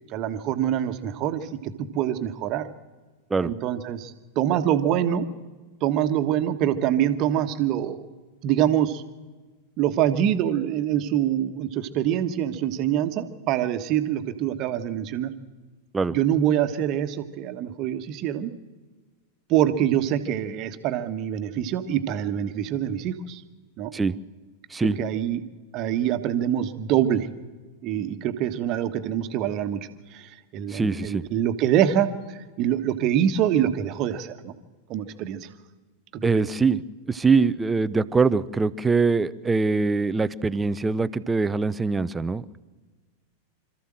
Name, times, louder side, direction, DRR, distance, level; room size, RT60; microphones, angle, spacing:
voice 1, 0.1-2.7 3.4-5.3 5.8-8.0 8.4-9.0 9.8-15.3 16.1-18.5 19.5-23.4 23.8-23.9 24.8-25.4 25.7-27.3 27.8-34.5 34.9-35.5 36.1-36.5, right 10 dB, 40° right, 9 dB, 1.3 m, -25 dB
voice 2, 30.7-31.2 36.2-36.8 37.1-42.6, right 4 dB, 10° right, 16 dB, 0.6 m, -23 dB
26.0 x 14.0 x 7.7 m, 1.3 s
figure-of-eight pair, 90°, 0 cm